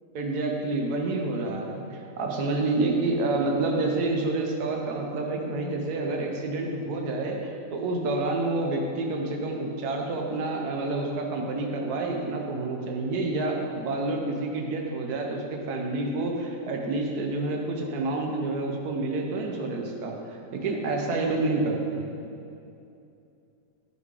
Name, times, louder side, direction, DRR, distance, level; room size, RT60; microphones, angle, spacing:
voice 1, 0.1-22.1, right 2 dB, 70° right, 1 dB, 1.4 m, -28 dB
10.0 x 5.5 x 4.8 m, 2.7 s
omnidirectional pair, 1.7 m